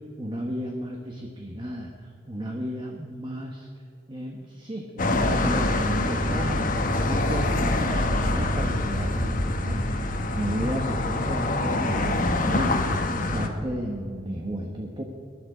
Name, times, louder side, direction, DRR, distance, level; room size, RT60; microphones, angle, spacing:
voice 1, 0.2-3.7 4.1-15.0, equal, 25° right, 1 dB, 1.2 m, -33 dB
sound 1, 5.0-13.5, left 2 dB, 45° left, 1.2 m, -25 dB
20.0 x 11.0 x 5.0 m, 2.3 s
head